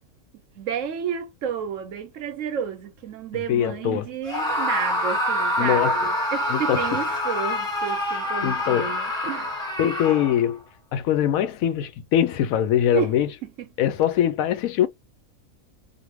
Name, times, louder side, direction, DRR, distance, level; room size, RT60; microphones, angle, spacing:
voice 1, 0.5-9.6 12.9-13.2 13.4-13.7, right 8 dB, 70° right, 1.0 m, -31 dB
voice 2, 3.5-4.1 5.6-6.0 6.5-6.9 8.4-8.9 9.8-10.6 10.9-13.3 13.8-14.9, left 10 dB, 85° left, 1.0 m, -22 dB
Screaming, 4.3-10.5, left 1 dB, 5° left, 1.0 m, -26 dB
2.6 x 2.5 x 3.0 m
omnidirectional pair, 1.4 m